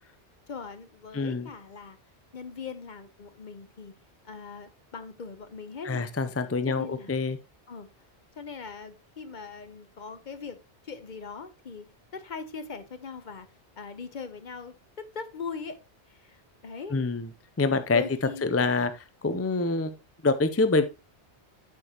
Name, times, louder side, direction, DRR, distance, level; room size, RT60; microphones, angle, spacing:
voice 1, 0.5-2.0 2.3-3.9 4.2-6.1 6.7-7.2 7.7-7.9 8.4-10.6 10.8-11.9 12.1-13.5 13.8-15.8 16.1-17.0 17.6-18.5, left 5 dB, 45° left, 0.9 m, -40 dB
voice 2, 1.1-1.5 5.9-7.4 16.9-17.3 17.6-18.0 18.4-18.9 19.2-19.9 20.2-20.9, left 3 dB, 20° left, 0.3 m, -25 dB
8.2 x 6.8 x 2.9 m
omnidirectional pair, 1.2 m